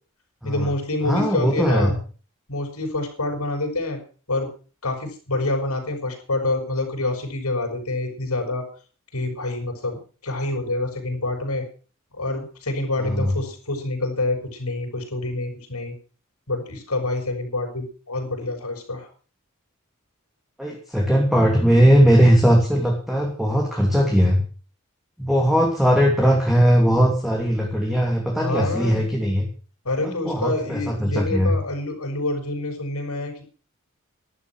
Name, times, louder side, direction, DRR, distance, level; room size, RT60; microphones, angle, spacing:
voice 1, 0.4-1.9 2.5-4.0 4.3-4.5 4.8-8.7 9.1-11.7 12.1-15.9 16.5-19.1 28.4-29.0 29.8-33.5, left 2 dB, 80° left, 3 dB, 6.7 m, -27 dB
voice 2, 1.0-1.9 13.0-13.3 20.6-24.4 25.2-29.5 30.0-31.5, equal, ahead, -1 dB, 2.9 m, -19 dB
13.0 x 12.0 x 6.3 m, 0.39 s
head